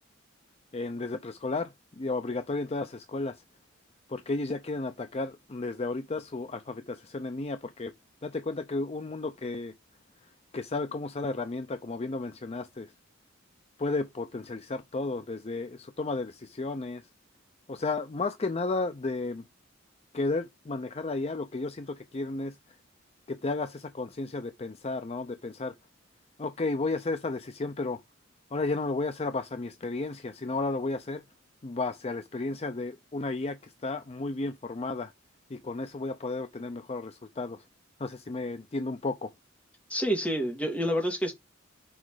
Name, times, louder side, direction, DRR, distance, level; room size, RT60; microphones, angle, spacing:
voice 1, 0.7-3.4 4.1-7.9 8.2-9.7 10.2-12.9 13.8-17.1 17.7-19.4 20.1-22.8 23.3-25.8 26.4-28.0 28.5-31.2 31.6-35.1 35.5-37.6 38.0-39.3, left 3 dB, 30° left, 0.5 m, -33 dB
voice 2, 39.9-41.3, equal, 5° left, 2.4 m, -28 dB
6.3 x 4.9 x 4.8 m
head